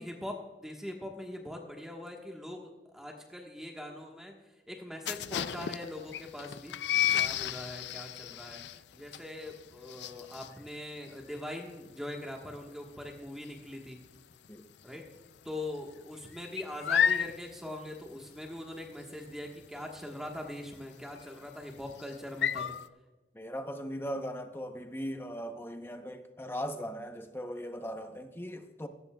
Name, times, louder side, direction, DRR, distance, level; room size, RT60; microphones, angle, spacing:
voice 1, 0.0-4.4 4.7-6.8 7.1-8.6 8.9-14.0 14.8-15.0 15.4-22.7, left 1 dB, 5° right, 1.3 m, -42 dB
sound 1, 5.1-14.5 14.8-15.2 15.5-22.9, left 9 dB, 75° left, 0.4 m, -33 dB
voice 2, 23.3-28.9, equal, 15° left, 0.8 m, -39 dB
16.0 x 15.0 x 2.3 m
head